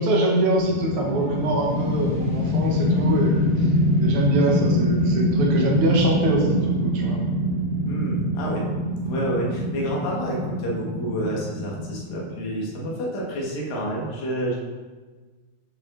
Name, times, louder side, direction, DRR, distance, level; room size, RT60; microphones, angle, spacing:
voice 1, 0.0-3.7 4.0-7.2, right 2 dB, 75° right, -2 dB, 1.3 m, -24 dB
sound 1, 0.6-12.8, left 1 dB, 45° left, 2.4 m, -24 dB
voice 2, 7.9-8.6 9.1-14.6, right 1 dB, 65° left, -4 dB, 2.4 m, -29 dB
9.5 x 5.1 x 2.4 m, 1.4 s
omnidirectional pair, 3.8 m